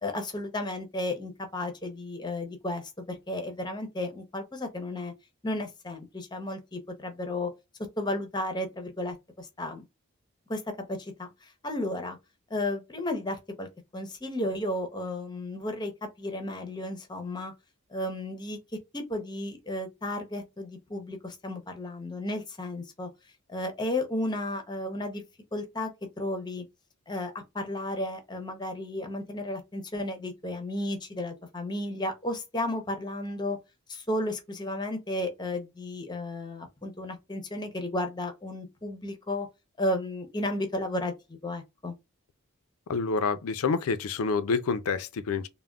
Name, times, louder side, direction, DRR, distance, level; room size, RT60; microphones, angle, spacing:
voice 1, 0.0-5.1 5.4-7.5 8.0-9.8 10.5-12.2 12.5-13.7 13.9-17.5 17.9-18.6 18.9-23.1 23.5-25.2 25.5-25.9 26.2-26.6 27.1-33.6 33.9-39.5 39.8-41.1 41.4-41.9, left 1 dB, 20° left, 0.6 m, -33 dB
voice 2, 42.9-45.5, left 4 dB, 90° left, 0.4 m, -28 dB
3.5 x 2.1 x 2.2 m
head